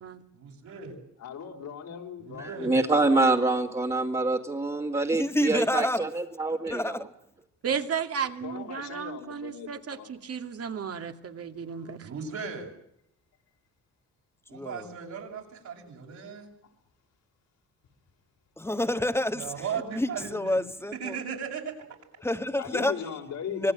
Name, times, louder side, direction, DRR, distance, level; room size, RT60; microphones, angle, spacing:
voice 1, 0.3-1.0 2.2-2.7 12.0-12.7 14.5-16.5 19.4-20.6 20.9-21.7, right 6 dB, 70° right, 7.1 m, -37 dB
voice 2, 1.2-3.6 8.4-10.1 11.8-11.9 22.6-23.7, left 8 dB, 75° left, 4.5 m, -39 dB
voice 3, 2.4-7.0, right 2 dB, 20° right, 2.5 m, -26 dB
voice 4, 5.1-6.0 6.7-7.0 14.5-14.9 18.6-19.5 19.9-21.2 22.2-22.9 23.5-23.7, left 1 dB, 10° left, 1.6 m, -28 dB
voice 5, 7.6-12.1, right 7 dB, 50° right, 2.5 m, -34 dB
26.0 x 19.0 x 9.1 m
cardioid pair, 90°, 30 cm